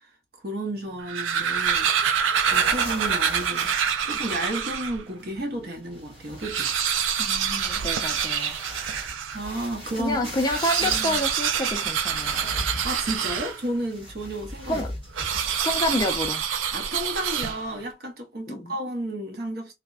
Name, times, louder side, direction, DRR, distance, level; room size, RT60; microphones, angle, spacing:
voice 1, 0.4-1.9 2.5-3.7 4.0-6.7 8.9-10.2 10.8-11.2 12.8-14.8 16.7-19.7, right 1 dB, 50° right, 0.8 m, -32 dB
sound 1, 0.9-5.0 5.6-5.7 5.9-6.0 6.3-9.4 10.4-13.8 15.1-17.8, right 7 dB, 85° right, 0.3 m, -26 dB
sound 2, 1.6-4.8 5.1-16.4 16.7-16.8 17.2-17.4, equal, 30° right, 1.9 m, -40 dB
voice 2, 7.2-8.6 10.0-12.4 14.7-14.9 15.6-16.4 18.5-18.7, left 1 dB, 20° left, 0.4 m, -28 dB
3.2 x 2.0 x 2.4 m
head